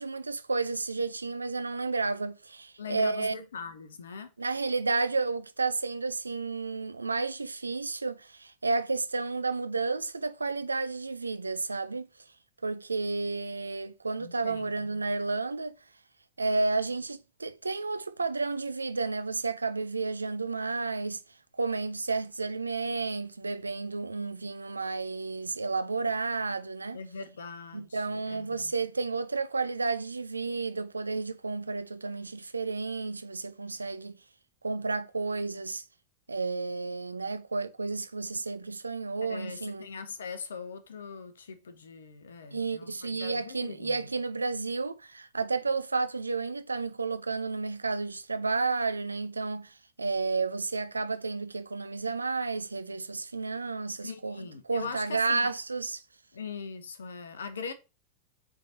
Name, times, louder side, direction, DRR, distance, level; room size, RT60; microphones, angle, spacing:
voice 1, 0.0-3.3 4.4-12.1 12.6-15.7 16.4-21.2 21.6-27.0 27.7-34.2 34.6-35.8 36.3-39.9 42.5-56.0, right 3 dB, 80° right, 0.6 m, -31 dB
voice 2, 2.8-4.3 14.2-14.9 26.9-28.7 39.3-44.0 54.0-55.5 56.3-57.7, left 5 dB, 65° left, 1.1 m, -41 dB
7.8 x 3.8 x 4.3 m
figure-of-eight pair, 90°, 0 cm